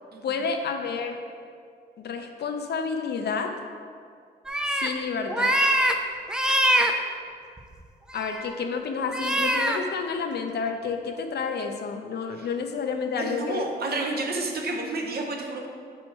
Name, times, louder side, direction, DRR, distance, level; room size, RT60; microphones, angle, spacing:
voice 1, 0.2-1.2 2.0-3.5 4.7-5.6 8.1-13.7, left 5 dB, 65° left, 5 dB, 0.6 m, -30 dB
sound 1, 4.5-4.9 5.3-5.9 6.3-6.9 7.6-7.8 8.2-8.5 9.1-9.8, right 1 dB, 5° right, 0.3 m, -23 dB
voice 2, 13.2-15.7, right 2 dB, 60° right, 2 dB, 0.9 m, -30 dB
7.4 x 4.4 x 4.5 m, 2.2 s
wide cardioid pair, 170°, 18 cm